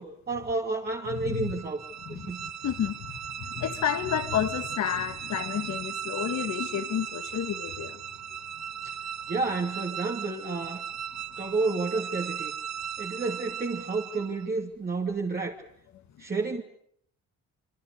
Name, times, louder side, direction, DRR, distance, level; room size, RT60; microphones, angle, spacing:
voice 1, 0.0-1.8 2.1-2.5 9.3-10.8 11.4-12.5 13.0-15.6 16.2-16.6, right 3 dB, 30° right, 2.7 m, -30 dB
voice 2, 1.1-1.5 2.1-8.0, left 9 dB, 70° left, 2.2 m, -31 dB
sound 1, 1.1-14.5, right 9 dB, 60° right, 1.5 m, -37 dB
26.5 x 25.0 x 6.7 m
cardioid pair, 90°, 30 cm